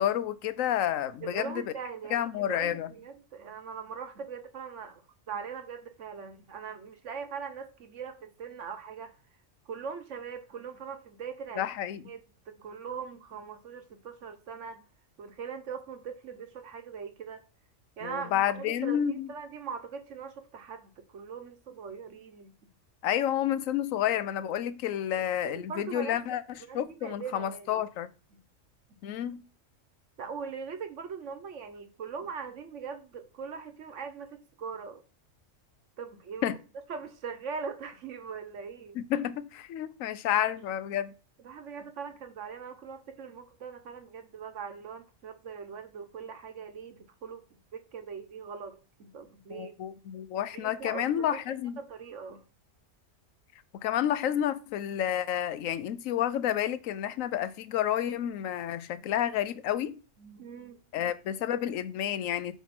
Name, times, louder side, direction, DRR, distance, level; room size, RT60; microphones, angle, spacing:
voice 1, 0.0-1.6 2.1-2.9 11.6-12.0 18.0-19.3 23.0-26.4 26.7-28.1 29.0-29.4 36.4-36.6 39.0-41.1 49.5-51.8 53.8-60.0 60.9-62.6, left 10 dB, 90° left, 1.0 m, -30 dB
voice 2, 1.2-5.0 5.3-9.1 9.7-11.7 12.0-14.8 15.2-17.4 18.0-19.0 19.3-22.5 25.4-27.8 28.3-28.4 30.2-35.0 36.0-36.6 36.9-39.0 41.4-47.5 47.7-49.8 50.5-51.4 51.8-52.4 60.2-61.1, right 6 dB, 70° right, 1.3 m, -41 dB
8.2 x 3.0 x 5.8 m
omnidirectional pair, 1.4 m